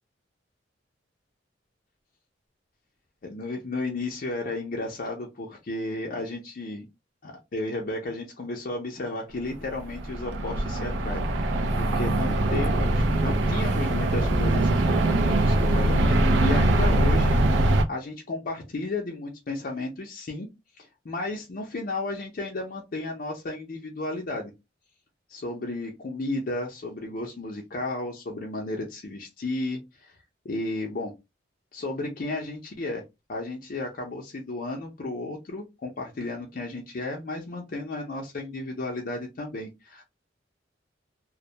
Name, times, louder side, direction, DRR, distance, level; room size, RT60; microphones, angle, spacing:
voice 1, 3.2-6.9 7.2-20.5 20.8-24.5 25.3-30.2 30.4-31.1 31.7-33.0 33.3-40.0, left 2 dB, 50° left, 0 dB, 0.5 m, -33 dB
sound 1, 9.6-17.8, right 1 dB, 75° right, 0.4 m, -22 dB
2.2 x 2.1 x 2.7 m, 0.23 s
head